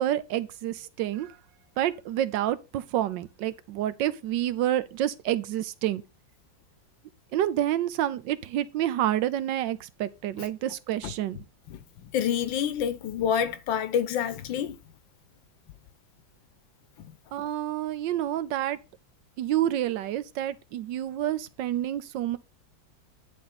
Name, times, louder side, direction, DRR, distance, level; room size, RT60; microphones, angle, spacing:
voice 1, 0.0-1.4 1.8-6.0 7.3-11.4 17.3-18.8 19.4-22.4, right 12 dB, 75° right, 1.3 m, -28 dB
voice 2, 11.7-14.8, left 8 dB, 85° left, 1.6 m, -28 dB
10.5 x 3.7 x 5.7 m
omnidirectional pair, 2.0 m